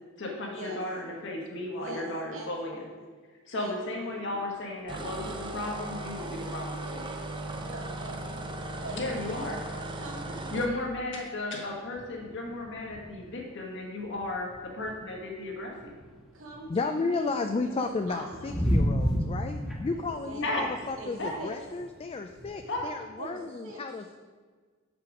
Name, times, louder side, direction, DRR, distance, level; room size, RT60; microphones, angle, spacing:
voice 1, 0.2-2.8 3.5-7.0 8.9-9.6 10.5-15.9 20.4-20.6 21.2-21.4 22.7-22.9, left 2 dB, 60° left, 0 dB, 1.5 m, -34 dB
voice 2, 1.7-2.1 2.3-3.1 3.5-4.4 7.6-9.5 9.9-10.7 16.3-17.2 17.8-18.6 19.9-20.7 21.0-21.5 23.2-23.8, right 1 dB, 65° right, -2 dB, 2.0 m, -43 dB
sound 1, 4.9-10.7, right 2 dB, 25° right, 0.6 m, -37 dB
sound 2, 11.9-13.3 13.6-13.7 14.0-16.7 17.3-22.8, equal, ahead, 1.3 m, -32 dB
voice 3, 16.7-24.2, left 3 dB, 30° left, 6 dB, 0.3 m, -33 dB
7.6 x 6.0 x 4.9 m, 1.5 s
head